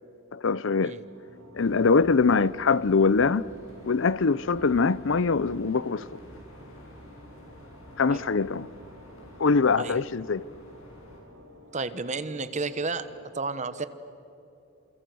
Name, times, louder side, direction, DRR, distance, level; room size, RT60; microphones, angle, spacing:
voice 1, 0.3-1.0 1.5-3.4 3.8-6.0 8.0-8.7 9.4-10.4, left 4 dB, 65° left, 0.6 m, -23 dB
sound 1, 1.0-13.2, equal, 85° right, 4.2 m, -52 dB
sound 2, 1.6-11.2, equal, 85° left, 7.1 m, -50 dB
voice 2, 11.7-13.1 13.3-13.9, right 3 dB, 35° right, 1.1 m, -31 dB
29.5 x 27.5 x 6.4 m
head